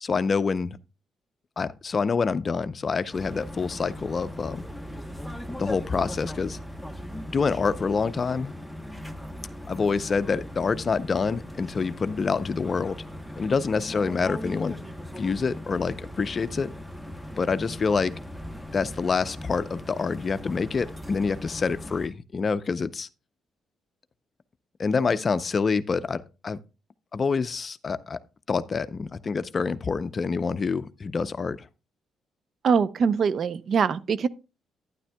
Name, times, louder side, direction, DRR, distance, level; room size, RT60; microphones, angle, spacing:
voice 1, 0.0-0.8 1.6-4.6 5.6-6.6 7.3-8.5 9.7-13.0 13.4-14.8 15.2-16.7 17.4-18.1 18.7-23.1 24.8-26.6 27.1-28.2 28.5-31.7, left 5 dB, 40° left, 0.5 m, -27 dB
sound 1, 3.1-22.1, equal, ahead, 1.0 m, -39 dB
voice 2, 32.6-34.3, right 6 dB, 55° right, 0.5 m, -23 dB
11.5 x 9.9 x 2.2 m
cardioid pair, 90°, 0 cm